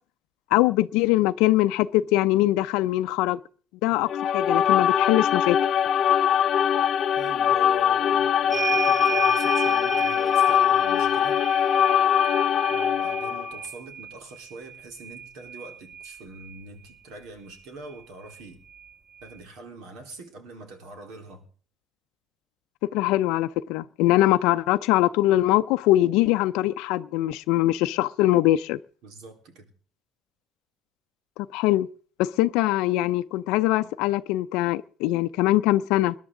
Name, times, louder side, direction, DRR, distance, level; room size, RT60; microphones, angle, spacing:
voice 1, 0.5-3.4 3.8-5.6 22.9-28.8 31.4-31.9 32.2-36.1, left 16 dB, 90° left, 0.5 m, -22 dB
sound 1, 4.1-13.5, left 9 dB, 40° left, 0.7 m, -22 dB
voice 2, 7.2-11.4 12.7-18.6 19.2-21.4 29.0-29.7, right 3 dB, 70° right, 3.8 m, -44 dB
sound 2, 8.5-16.6 17.9-18.0 18.3-19.4, right 7 dB, 10° right, 0.6 m, -34 dB
21.5 x 11.0 x 3.8 m
cardioid pair, 150°, 0 cm